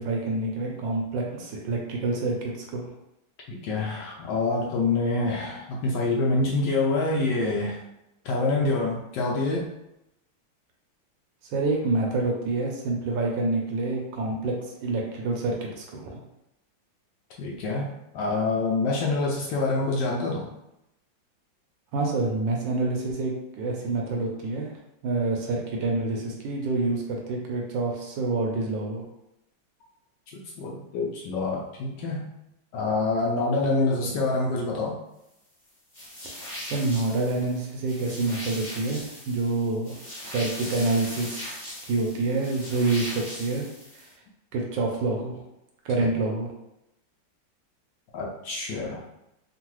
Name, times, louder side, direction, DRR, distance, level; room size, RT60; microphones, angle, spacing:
voice 1, 0.0-2.9 11.5-16.2 21.9-24.7 25.0-29.0 36.6-40.0 40.2-41.6 41.8-43.6 43.9-44.1 44.5-45.4 45.8-46.5, right 3 dB, 75° right, 0 dB, 1.2 m, -27 dB
voice 2, 3.5-7.8 8.2-9.7 17.4-20.5 30.3-32.3 32.7-35.0 46.0-46.1 48.1-49.0, left 3 dB, 75° left, -2 dB, 1.1 m, -26 dB
sound 1, 35.9-44.1, left 1 dB, 25° left, 0.7 m, -39 dB
3.7 x 2.3 x 3.0 m, 0.86 s
omnidirectional pair, 2.2 m